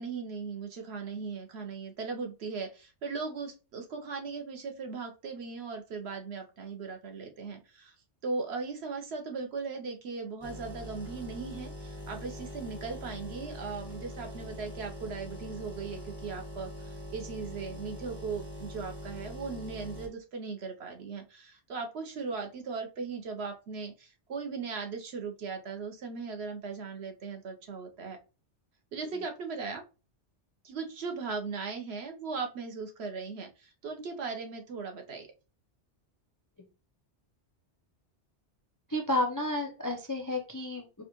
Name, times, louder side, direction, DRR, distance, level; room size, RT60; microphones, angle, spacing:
voice 1, 0.0-7.9 8.2-28.2 28.9-29.8 30.6-35.3, right 4 dB, 70° right, 4 dB, 1.0 m, -38 dB
sound 1, 10.4-20.1, equal, 25° right, 1.0 m, -43 dB
voice 2, 38.9-41.0, left 1 dB, 30° left, 2 dB, 0.3 m, -31 dB
4.7 x 2.3 x 3.0 m, 0.32 s
omnidirectional pair, 1.2 m